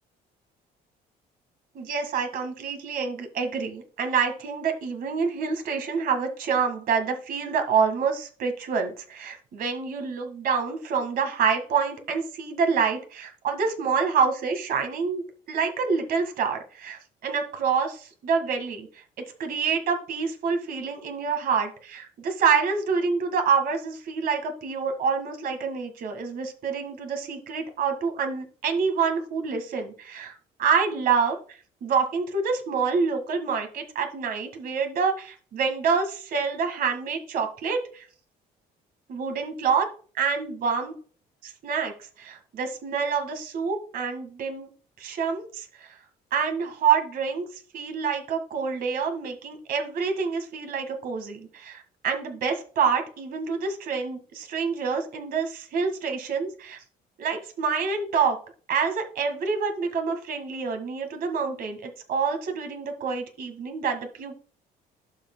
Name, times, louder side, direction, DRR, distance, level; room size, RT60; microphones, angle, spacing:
voice 1, 1.8-18.9 19.4-31.4 31.8-38.1 39.1-39.9 40.2-40.9 41.4-41.9 42.2-44.7 45.0-46.0 46.3-47.5 47.7-56.8 57.2-58.4 58.7-64.4, right 5 dB, 60° right, 5 dB, 1.8 m, -27 dB
11.5 x 6.1 x 2.2 m, 0.40 s
cardioid pair, 110°, 17 cm